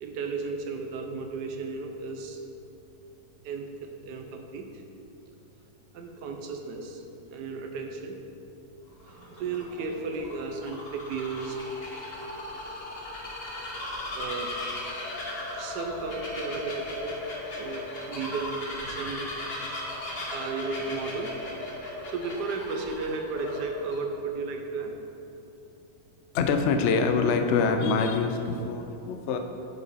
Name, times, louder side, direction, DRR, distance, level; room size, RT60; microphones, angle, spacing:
voice 1, 0.0-2.4 3.4-4.8 5.9-8.2 9.0-11.6 13.4-14.5 15.5-17.2 17.6-19.2 19.6-21.3 22.1-24.9, right 4 dB, 75° right, 3 dB, 1.2 m, -35 dB
Bird vocalization bird call bird song, 8.9-24.0, left 1 dB, 40° left, 1.1 m, -37 dB
voice 2, 26.3-29.4, left 4 dB, 85° left, 6 dB, 0.6 m, -25 dB
7.0 x 6.9 x 4.1 m, 2.9 s
omnidirectional pair, 1.9 m